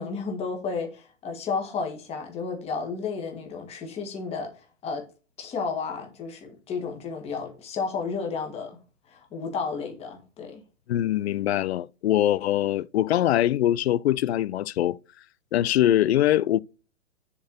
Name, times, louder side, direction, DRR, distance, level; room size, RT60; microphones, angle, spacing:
voice 1, 0.0-5.0 5.4-8.8 9.1-10.6, left 5 dB, 15° left, 1.8 m, -32 dB
voice 2, 10.9-15.0 15.5-16.6, left 13 dB, 60° left, 0.5 m, -23 dB
7.0 x 4.4 x 6.4 m
hypercardioid pair, 150°, 37 cm